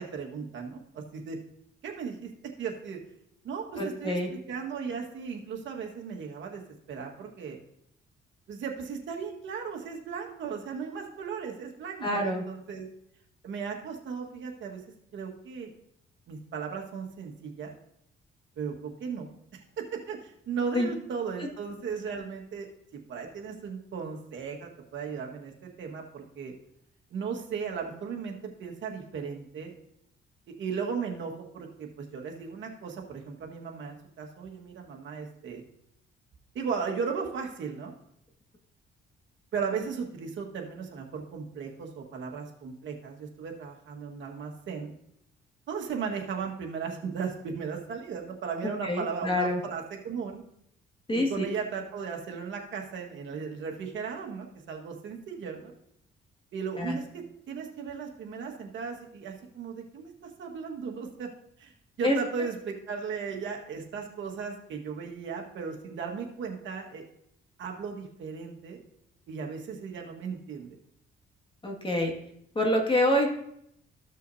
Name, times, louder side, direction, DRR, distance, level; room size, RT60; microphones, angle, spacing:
voice 1, 0.0-1.4 1.8-2.3 2.6-3.0 3.4-6.6 6.9-7.6 8.5-12.9 13.4-14.8 15.1-15.7 16.3-17.8 18.6-26.5 27.1-29.7 30.5-35.6 36.6-37.9 39.5-44.9 45.7-50.4 51.1-55.7 56.5-61.3 61.6-61.7 62.0-67.0 67.6-68.8 69.3-70.8, right 6 dB, 70° right, 1 dB, 1.7 m, -36 dB
voice 2, 3.8-4.3 12.0-12.4 20.7-20.9 21.4-21.5 48.8-49.6 51.1-51.4 56.8-57.0 62.0-62.2 71.6-72.1 72.5-73.3, left 1 dB, 25° left, 0 dB, 2.1 m, -26 dB
14.5 x 6.4 x 2.8 m, 0.74 s
cardioid pair, 90°, 20 cm